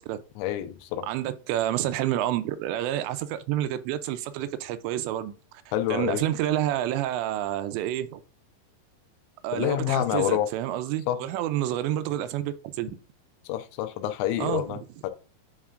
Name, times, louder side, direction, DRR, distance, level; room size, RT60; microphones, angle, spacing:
voice 1, 0.4-1.1 5.7-6.2 9.5-10.5 11.1-11.2 13.5-15.1, left 12 dB, 85° left, 2.9 m, -27 dB
voice 2, 1.0-5.3 5.9-8.2 9.4-13.0 14.4-14.6, right 12 dB, 80° right, 2.7 m, -29 dB
8.9 x 4.3 x 2.5 m
omnidirectional pair, 5.3 m